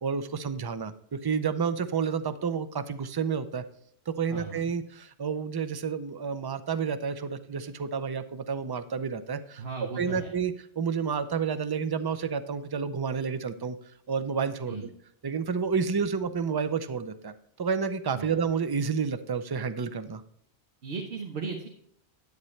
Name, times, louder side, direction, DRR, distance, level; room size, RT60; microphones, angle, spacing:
voice 1, 0.0-3.6 4.1-9.6 10.0-13.8 14.1-14.9 15.2-20.2, right 6 dB, 35° right, 11 dB, 0.4 m, -30 dB
voice 2, 4.3-4.7 9.6-10.3 14.7-14.9 18.1-18.3 20.8-21.7, right 4 dB, 75° right, 1 dB, 1.3 m, -36 dB
10.5 x 8.5 x 3.2 m, 0.69 s
omnidirectional pair, 1.1 m